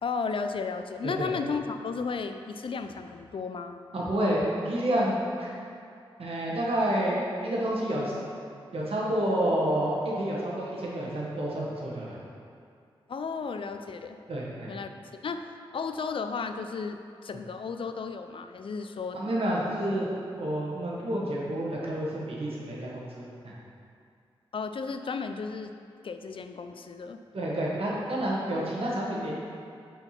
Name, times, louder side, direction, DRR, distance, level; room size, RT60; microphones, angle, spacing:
voice 1, 0.0-3.8 13.1-14.2 14.7-14.9 15.2-15.5 15.7-19.2 24.5-25.7 26.0-27.2, left 5 dB, 60° left, 7 dB, 0.4 m, -34 dB
voice 2, 3.9-5.5 6.2-8.1 8.7-12.2 14.3-14.7 19.1-20.1 20.4-23.5 27.3-29.3, right 1 dB, 75° right, -5 dB, 1.4 m, -29 dB
4.6 x 4.5 x 5.6 m, 2.4 s
cardioid pair, 55°, 10 cm